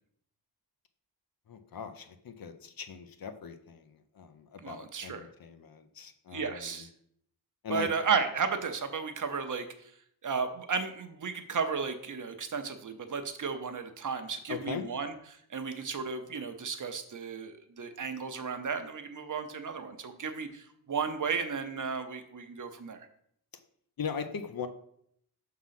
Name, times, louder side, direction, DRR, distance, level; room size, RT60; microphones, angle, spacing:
voice 1, 1.5-6.9 7.6-7.9 14.5-14.9 24.0-24.7, left 6 dB, 60° left, 9 dB, 0.7 m, -40 dB
voice 2, 4.6-5.3 6.3-6.9 7.7-9.7 10.2-15.1 15.5-23.0, right 5 dB, 50° right, 8 dB, 0.7 m, -34 dB
6.0 x 3.8 x 5.7 m, 0.69 s
wide cardioid pair, 160°, 40 cm